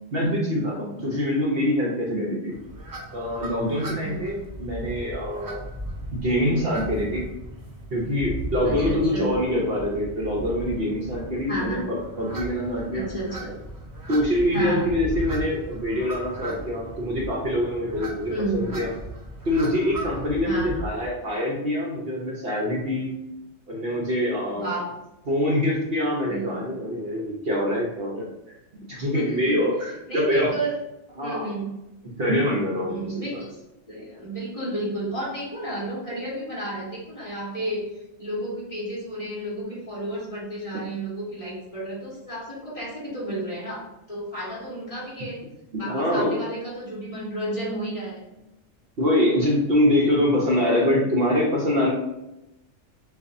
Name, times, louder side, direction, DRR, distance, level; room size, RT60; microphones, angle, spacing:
voice 1, 0.1-2.5 3.1-5.7 6.1-7.3 7.9-13.0 14.1-18.9 19.4-23.1 23.7-24.8 25.3-28.3 28.7-30.5 31.2-31.5 32.2-33.1 33.3-33.4 44.3-44.5 45.7-46.4 49.0-51.9, left 1 dB, 50° right, -3 dB, 1.0 m, -24 dB
sound 1, 2.5-21.1, right 1 dB, 30° right, 0.3 m, -37 dB
voice 2, 4.0-4.4 8.6-9.3 11.5-11.8 12.9-13.5 14.5-14.9 18.3-18.7 20.4-20.8 24.5-24.9 26.3-26.7 29.1-29.7 30.1-30.7 31.2-31.7 32.9-33.6 33.9-37.8 38.2-45.4 45.8-48.2, right 1 dB, 25° left, -7 dB, 1.4 m, -32 dB
6.7 x 2.6 x 2.6 m, 0.93 s
omnidirectional pair, 1.4 m